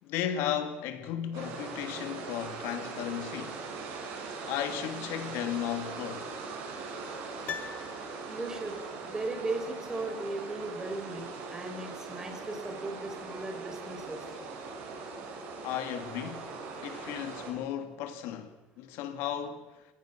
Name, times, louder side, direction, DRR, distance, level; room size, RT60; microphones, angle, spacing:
voice 1, 0.0-3.6 4.4-6.3 15.6-16.4 16.8-19.9, left 10 dB, 75° left, 2.4 m, -35 dB
sound 1, 1.3-17.5, right 4 dB, 75° right, 6.9 m, -41 dB
Piano, 7.4-8.7 9.0-9.1, left 8 dB, 40° left, 0.9 m, -42 dB
voice 2, 8.3-8.8 9.1-14.2, right 2 dB, 15° right, 4.8 m, -37 dB
26.5 x 19.0 x 6.1 m
cardioid pair, 120°, 4 cm